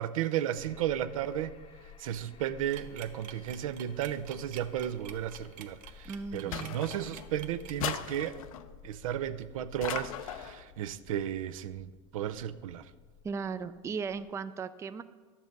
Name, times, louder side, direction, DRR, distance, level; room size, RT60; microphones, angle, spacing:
voice 1, 0.0-1.5 2.0-8.4 8.8-12.9, right 11 dB, 85° right, 12 dB, 0.5 m, -34 dB
sound 1, 0.5-14.3, left 7 dB, 30° left, 0.7 m, -54 dB
sound 2, 2.7-7.9, right 10 dB, 50° right, 0.8 m, -48 dB
voice 2, 6.0-6.8 13.2-15.0, right 5 dB, 15° right, 12 dB, 0.3 m, -37 dB
sound 3, 6.5-7.3 7.8-8.7 9.8-10.6, left 10 dB, 85° left, 0.5 m, -37 dB
11.0 x 7.2 x 3.9 m, 1.4 s
supercardioid pair, 115°, 17 cm